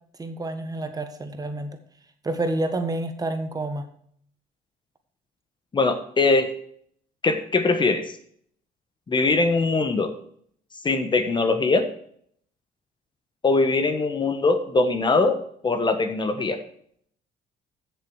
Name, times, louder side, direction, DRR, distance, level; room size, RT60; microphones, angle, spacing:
voice 1, 0.2-1.7 2.2-3.9, right 2 dB, 20° right, 8 dB, 1.6 m, -28 dB
voice 2, 5.7-6.5 7.2-8.1 9.1-10.1 10.8-11.8 13.4-15.4 15.6-16.6, left 3 dB, 25° left, 9 dB, 1.3 m, -21 dB
15.0 x 7.1 x 4.8 m, 0.63 s
cardioid pair, 110°, 17 cm